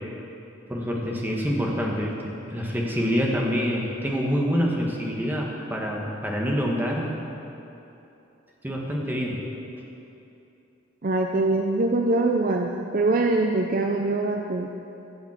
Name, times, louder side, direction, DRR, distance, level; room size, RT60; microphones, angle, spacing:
voice 1, 0.7-7.1 8.6-9.4, equal, 10° right, -2 dB, 1.5 m, -26 dB
voice 2, 11.0-14.7, right 2 dB, 45° right, 2 dB, 0.6 m, -23 dB
14.5 x 7.2 x 7.4 m, 2.9 s
head